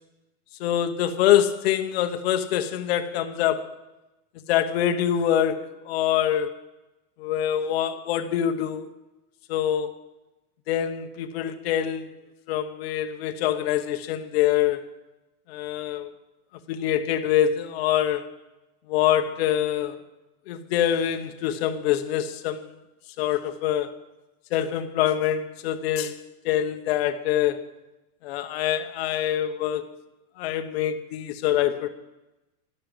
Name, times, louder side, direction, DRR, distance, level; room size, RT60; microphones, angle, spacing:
voice 1, 0.6-3.7 4.5-6.5 7.2-8.9 9.5-9.9 10.7-12.1 12.5-14.9 15.5-16.1 16.7-18.2 18.9-20.0 20.5-22.7 23.2-23.9 24.5-27.6 28.2-29.8 30.4-31.9, left 10 dB, 40° left, 1.0 m, -25 dB
12.5 x 12.0 x 9.0 m
supercardioid pair, 170°, 45 cm